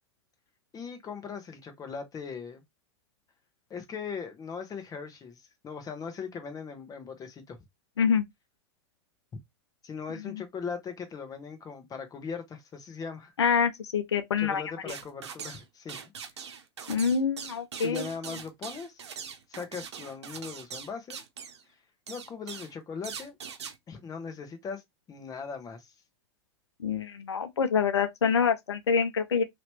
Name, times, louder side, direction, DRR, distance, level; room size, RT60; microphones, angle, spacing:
voice 1, 0.7-2.6 3.7-7.6 9.8-13.3 14.4-16.1 17.8-19.0 19.5-21.2 22.1-23.4 23.9-24.8 25.1-25.9, left 5 dB, 25° left, 1.2 m, -39 dB
voice 2, 13.4-14.9 16.9-18.1 26.8-29.4, left 6 dB, 90° left, 0.5 m, -26 dB
sound 1, 14.9-15.6 15.9-21.6 22.1-22.7 23.0-23.7, right 7 dB, 85° right, 0.7 m, -41 dB
3.1 x 2.9 x 3.0 m
hypercardioid pair, 100°, 14 cm